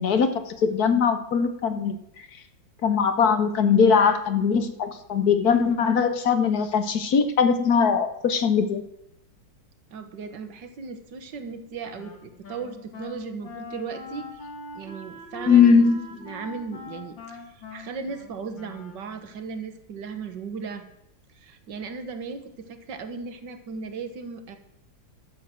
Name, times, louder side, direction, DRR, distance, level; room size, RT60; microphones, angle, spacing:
voice 1, 0.0-2.0 2.8-8.8 15.5-16.0, left 6 dB, 60° left, 9 dB, 1.4 m, -20 dB
voice 2, 9.9-15.8 16.2-20.8 21.4-24.6, right 5 dB, 70° right, 8 dB, 1.9 m, -36 dB
Wind instrument woodwind instrument, 12.0-19.4, left 2 dB, 80° left, 3.2 m, -42 dB
12.5 x 7.0 x 7.5 m, 0.81 s
omnidirectional pair, 2.0 m